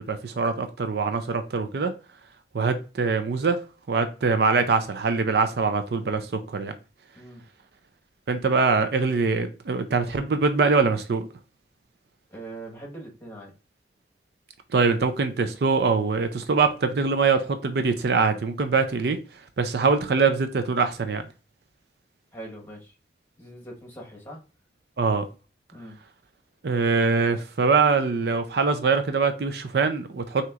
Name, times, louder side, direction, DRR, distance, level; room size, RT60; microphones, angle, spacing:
voice 1, 0.1-1.9 2.5-3.6 3.9-6.7 8.3-11.3 14.7-19.2 19.6-21.3 25.0-25.3 26.6-30.5, right 4 dB, 60° right, 0.4 m, -23 dB
voice 2, 12.3-13.5 22.3-23.0 23.4-24.4 25.7-26.0, right 1 dB, 15° left, 1.3 m, -41 dB
6.0 x 2.9 x 2.4 m
head